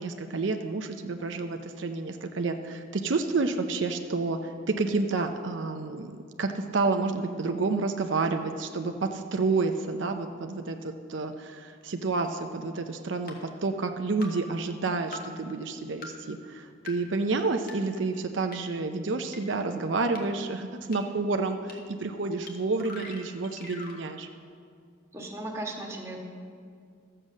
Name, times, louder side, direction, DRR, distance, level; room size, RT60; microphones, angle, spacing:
voice 1, 0.0-24.3, right 3 dB, 80° right, 6 dB, 0.6 m, -29 dB
sound 1, 12.2-12.3 13.3-13.4 14.2-14.3 15.1-15.2 16.0-16.1 16.9-17.0 17.7-17.8 18.5-18.6 19.3-19.4 20.2-20.3 20.9-21.0 21.7-21.8 22.5-22.6 22.8-24.0, left 3 dB, 50° left, 1.6 m, -42 dB
voice 2, 25.1-26.2, right 1 dB, 15° right, -1 dB, 1.5 m, -36 dB
13.5 x 7.7 x 6.4 m, 2.2 s
head